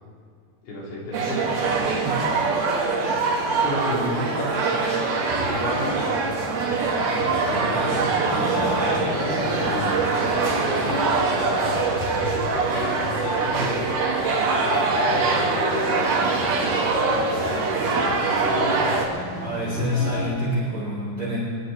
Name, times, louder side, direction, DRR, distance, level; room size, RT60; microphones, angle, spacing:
voice 1, 0.6-2.2 3.6-4.8 5.5-6.1 7.0-12.2 13.3-14.0 14.5-15.6 15.8-17.2 18.2-18.9, equal, 85° left, -5 dB, 5.1 m, -33 dB
sound 1, 1.1-19.1, right 4 dB, 70° right, 3.9 m, -23 dB
sound 2, 5.3-20.3, left 2 dB, 65° left, 4.1 m, -33 dB
voice 2, 19.4-21.4, left 1 dB, 40° right, -7 dB, 2.8 m, -26 dB
22.5 x 11.5 x 4.0 m, 2.3 s
omnidirectional pair, 4.9 m